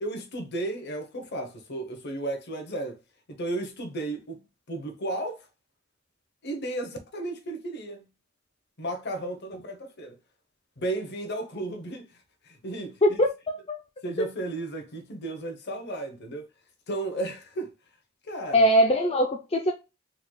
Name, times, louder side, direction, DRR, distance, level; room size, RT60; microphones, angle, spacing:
voice 1, 0.0-3.0 3.3-4.4 4.7-5.5 6.4-8.1 8.8-10.2 10.8-12.1 12.4-13.0 14.0-16.5 16.9-17.7 18.3-18.7, right 2 dB, 55° left, 0.9 m, -34 dB
voice 2, 13.0-13.8 14.2-14.3 18.5-19.7, equal, 30° left, 0.5 m, -22 dB
4.0 x 3.1 x 2.2 m
head